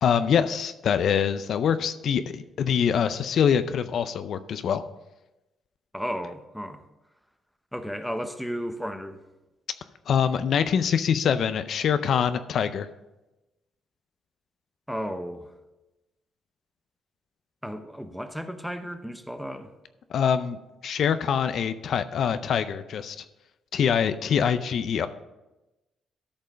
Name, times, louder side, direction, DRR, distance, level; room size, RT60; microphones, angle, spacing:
voice 1, 0.0-4.8 10.1-12.9 20.1-23.2 23.7-25.1, left 7 dB, 65° left, 11 dB, 0.5 m, -24 dB
voice 2, 5.9-6.8 7.7-9.2 14.9-15.5 17.6-19.7, equal, ahead, 9 dB, 0.8 m, -33 dB
13.0 x 5.4 x 5.0 m, 1.0 s
cardioid pair, 90°, 0 cm